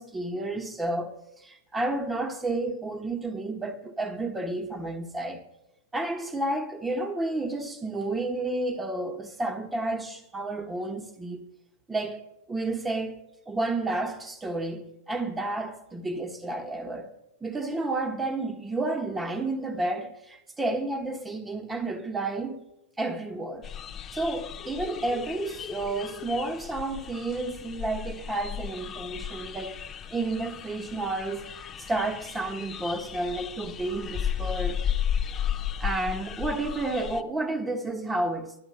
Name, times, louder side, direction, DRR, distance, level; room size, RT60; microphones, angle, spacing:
voice 1, 0.0-5.4 5.9-11.5 11.9-12.2 12.5-17.1 17.4-22.6 23.0-23.7 24.1-29.8 30.1-34.8 35.8-38.6, right 2 dB, 10° right, 1.2 m, -31 dB
sound 1, 23.6-37.2, left 9 dB, 20° left, 0.6 m, -34 dB
11.5 x 7.7 x 9.5 m
supercardioid pair, 150°, 0 cm